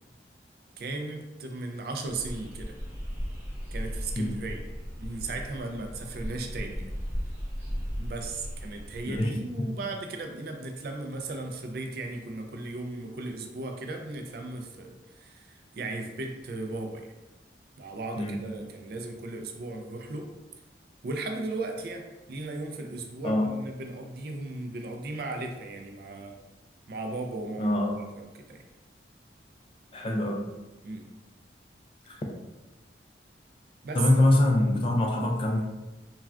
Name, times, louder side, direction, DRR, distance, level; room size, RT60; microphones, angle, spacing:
voice 1, 0.8-2.8 3.7-4.6 5.0-6.9 8.0-17.1 17.8-20.3 21.0-26.4 26.9-27.8 28.2-28.6 30.8-31.1 33.8-34.0, right 2 dB, 55° right, 4 dB, 0.3 m, -36 dB
sound 1, 2.0-9.2, equal, 15° right, 0.7 m, -36 dB
voice 2, 9.1-9.7 18.2-18.4 23.2-23.5 27.6-28.0 29.9-30.4 32.1-32.2 33.9-35.6, left 1 dB, 30° left, 1 dB, 0.3 m, -24 dB
3.2 x 2.3 x 2.4 m, 1.1 s
head